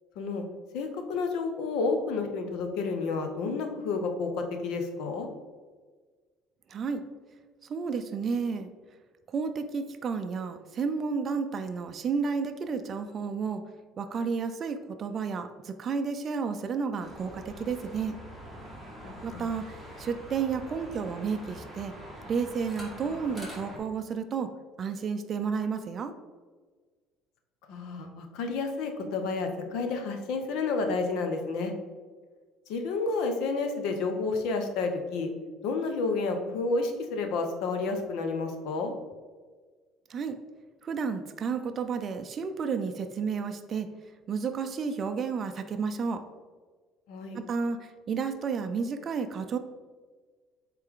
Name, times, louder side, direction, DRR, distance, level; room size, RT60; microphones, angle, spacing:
voice 1, 0.7-5.3 19.0-19.4 27.7-31.7 32.7-35.3 35.6-38.9 47.1-47.4, left 4 dB, 75° left, 5 dB, 0.9 m, -30 dB
voice 2, 6.7-7.0 7.7-8.7 9.3-13.6 14.0-18.2 19.2-21.9 22.3-24.5 24.8-26.1 40.1-40.4 40.8-43.9 44.3-46.2 47.3-49.6, right 5 dB, 35° right, 7 dB, 0.4 m, -31 dB
sound 1, 17.0-23.8, equal, 10° left, 1.6 m, -44 dB
8.0 x 3.3 x 3.7 m, 1.4 s
cardioid pair, 145°, 0 cm